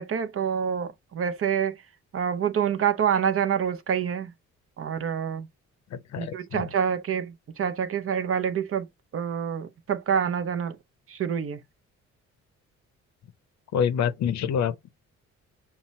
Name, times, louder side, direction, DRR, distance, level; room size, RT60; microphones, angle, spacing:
voice 1, 0.0-1.7 2.1-4.3 4.8-5.5 6.2-7.3 7.6-8.8 9.1-10.7 11.1-11.6, right 8 dB, 45° right, 0.7 m, -27 dB
voice 2, 5.9-6.7 13.7-14.9, left 8 dB, 65° left, 0.7 m, -27 dB
5.9 x 2.1 x 4.1 m
cardioid pair, 90°, 30 cm